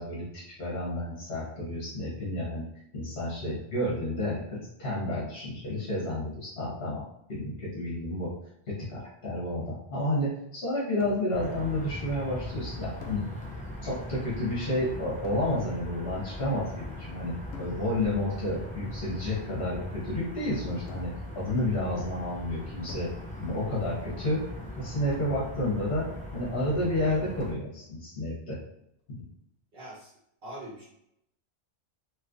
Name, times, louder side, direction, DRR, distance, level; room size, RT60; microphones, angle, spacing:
voice 1, 0.0-2.7 2.9-7.0 7.3-8.3 8.7-13.3 13.8-23.1 23.4-24.4 24.8-28.6 29.1-29.2, left 1 dB, 65° left, -6 dB, 1.4 m, -31 dB
sound 1, 11.0-11.5 13.0-13.9 15.2-16.0 17.5-18.2 20.9-21.4 22.9-23.7 25.1-25.9 27.4-28.1, left 3 dB, 90° left, 0.9 m, -48 dB
sound 2, 11.3-27.5, left 1 dB, 10° left, 0.4 m, -40 dB
voice 2, 29.7-30.1 30.4-30.8, right 1 dB, 60° right, -7 dB, 1.2 m, -42 dB
3.2 x 3.0 x 2.5 m, 0.77 s
omnidirectional pair, 1.1 m